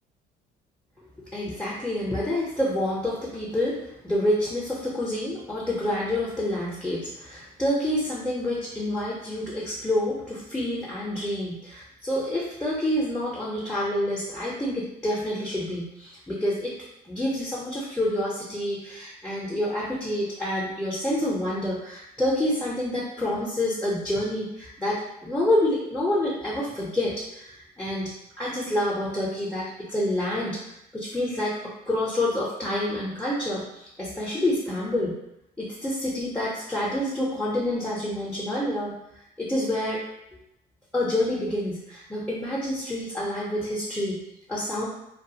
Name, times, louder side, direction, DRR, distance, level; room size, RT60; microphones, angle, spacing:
voice 1, 1.3-16.7 17.1-30.6 30.9-31.5 31.9-35.1 35.6-38.9 39.4-40.0 40.9-44.2 44.5-44.8, left 1 dB, 5° left, -6 dB, 0.6 m, -28 dB
2.3 x 2.3 x 2.7 m, 0.84 s
cardioid pair, 110°, 17 cm